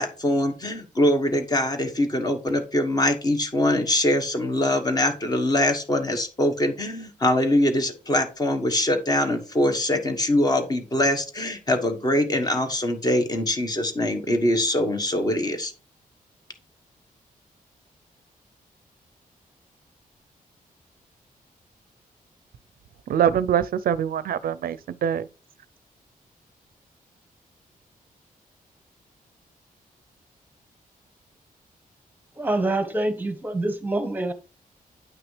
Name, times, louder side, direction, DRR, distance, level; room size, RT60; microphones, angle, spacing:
voice 1, 0.0-15.7, left 1 dB, 25° left, 1.2 m, -23 dB
voice 2, 23.1-25.3, right 9 dB, 80° right, 0.4 m, -24 dB
voice 3, 32.4-34.3, right 2 dB, 10° right, 1.1 m, -26 dB
9.2 x 5.9 x 3.2 m
wide cardioid pair, 165°, 15 cm